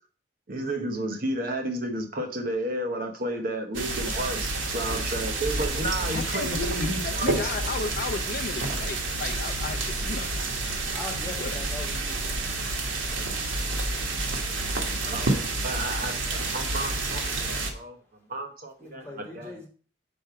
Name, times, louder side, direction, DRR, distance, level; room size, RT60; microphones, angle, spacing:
voice 1, 0.5-7.5 14.6-18.0 18.3-19.6, right 1 dB, 45° right, 5 dB, 0.8 m, -32 dB
sound 1, 3.7-17.7, right 2 dB, 75° right, 1.4 m, -29 dB
voice 2, 6.1-10.3 11.4-11.6, left 4 dB, 45° left, 7 dB, 0.4 m, -34 dB
voice 3, 10.8-12.5 18.8-19.7, left 2 dB, 5° left, -5 dB, 2.8 m, -41 dB
5.3 x 4.6 x 5.8 m, 0.42 s
head